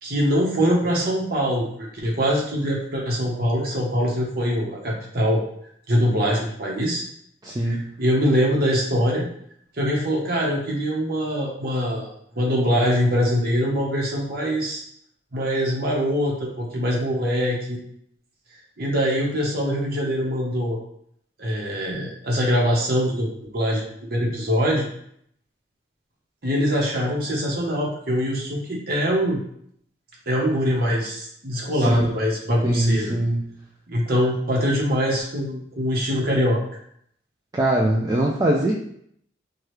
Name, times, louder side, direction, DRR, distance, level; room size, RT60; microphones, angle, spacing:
voice 1, 0.0-5.4 5.9-7.0 7.6-9.3 9.8-12.1 12.3-14.8 15.3-17.8 18.8-20.8 21.4-23.9 24.1-24.9 26.4-29.4 30.3-33.2 33.9-36.6, equal, 55° right, -2 dB, 0.9 m, -23 dB
voice 2, 7.4-7.9 31.8-32.1 32.6-33.5 37.5-38.7, right 1 dB, 20° right, -2 dB, 0.4 m, -22 dB
4.6 x 2.3 x 3.1 m, 0.68 s
head